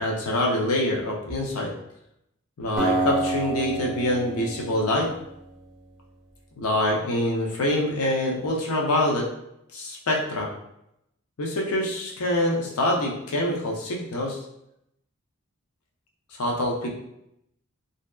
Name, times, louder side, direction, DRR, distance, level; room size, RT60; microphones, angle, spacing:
voice 1, 0.0-1.7 2.6-5.1 6.6-9.3 9.7-10.5 11.4-14.4 16.4-16.9, left 1 dB, 80° left, -1 dB, 0.6 m, -25 dB
Acoustic guitar, 2.8-5.9, right 2 dB, ahead, 0.6 m, -29 dB
2.7 x 2.2 x 2.2 m, 0.80 s
head